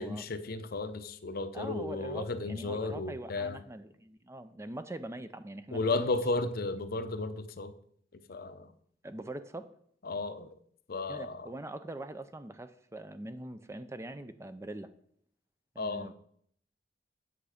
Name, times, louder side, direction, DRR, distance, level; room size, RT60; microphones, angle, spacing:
voice 1, 0.0-3.6 5.7-7.7 8.3-8.7 10.0-10.5 10.9-11.5 15.8-16.1, left 3 dB, 55° left, 10 dB, 0.7 m, -34 dB
voice 2, 1.5-6.1 9.0-9.7 11.1-14.9 15.8-16.1, right 1 dB, 15° right, 11 dB, 0.5 m, -43 dB
8.6 x 6.8 x 5.0 m, 0.64 s
head